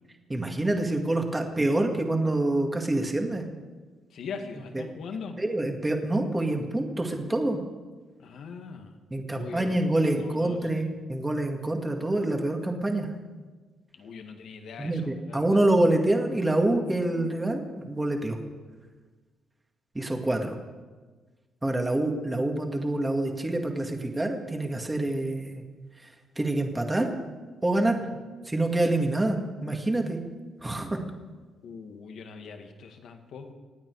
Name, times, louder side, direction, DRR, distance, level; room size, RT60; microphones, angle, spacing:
voice 1, 0.3-3.4 5.4-7.6 9.1-13.1 14.8-18.4 19.9-20.6 21.6-25.6 26.0-26.1 26.4-27.1 27.6-28.0 28.5-30.2 30.6-31.0, right 1 dB, 15° right, 3 dB, 2.2 m, -26 dB
voice 2, 4.1-5.4 8.2-8.9 9.3-10.8 13.9-15.6 28.0-28.2 31.6-33.5, left 5 dB, 70° left, 5 dB, 1.9 m, -41 dB
26.5 x 9.3 x 4.8 m, 1.4 s
cardioid pair, 90°, 0 cm